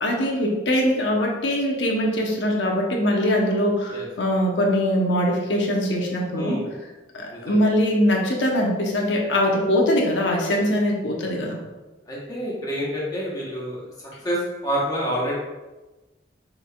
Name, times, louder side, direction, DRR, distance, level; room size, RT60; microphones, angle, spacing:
voice 1, 0.0-6.6 7.1-11.6, equal, 75° left, 0 dB, 0.9 m, -22 dB
voice 2, 6.3-6.7 7.3-7.6 12.1-13.8 14.2-15.3, equal, 20° left, -5 dB, 1.1 m, -27 dB
6.2 x 3.4 x 2.3 m, 1.1 s
head